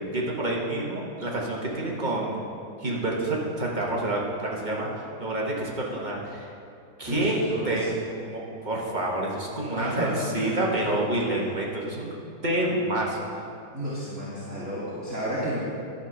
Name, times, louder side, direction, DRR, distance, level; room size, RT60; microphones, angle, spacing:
voice 1, 0.1-2.4 2.8-6.5 7.0-7.4 7.6-7.9 8.1-12.1 12.4-13.2, right 1 dB, 30° right, -3 dB, 1.2 m, -28 dB
voice 2, 7.0-7.8 9.7-10.8 13.7-15.6, equal, 10° right, -11 dB, 1.8 m, -32 dB
12.0 x 4.1 x 6.3 m, 2.5 s
omnidirectional pair, 1.9 m